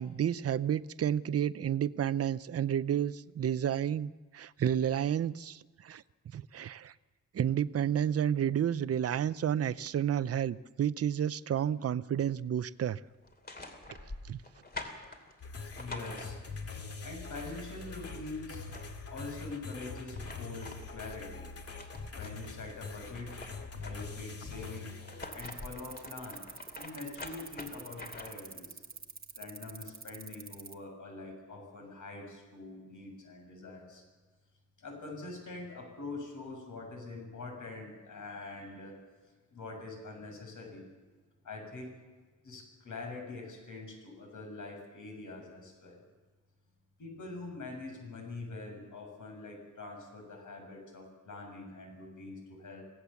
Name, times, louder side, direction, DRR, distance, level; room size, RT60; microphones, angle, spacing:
voice 1, 0.0-6.0 6.3-6.9 7.3-13.0 14.3-14.4, right 9 dB, 50° right, 16 dB, 0.6 m, -31 dB
sound 1, 13.2-16.8 18.2-18.3 18.5-19.4 19.9-22.6 23.0-24.3 24.9-28.5, left 2 dB, 30° left, 2.8 m, -47 dB
sound 2, 15.4-25.3, left 4 dB, 50° left, 2.2 m, -44 dB
voice 2, 15.7-16.4 17.0-18.7 19.1-21.5 22.1-23.4 23.8-24.9 25.3-26.4 26.8-28.8 29.4-34.0 34.8-39.0 39.5-40.9 41.4-42.0 42.4-46.0 47.0-52.8, left 3 dB, 70° left, 2 dB, 7.4 m, -44 dB
sound 3, 25.3-30.7, right 4 dB, 30° right, 1.1 m, -46 dB
25.5 x 17.0 x 7.1 m, 1.3 s
wide cardioid pair, 165°, 32 cm